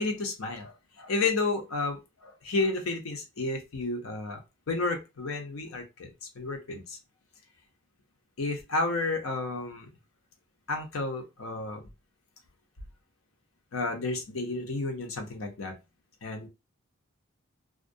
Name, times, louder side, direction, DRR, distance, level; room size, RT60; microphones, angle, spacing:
voice 1, 0.0-4.4 4.7-7.0 8.4-9.9 10.7-11.8 13.7-15.7 16.2-16.5, left 3 dB, 85° left, 0.7 m, -31 dB
2.4 x 2.1 x 2.6 m
head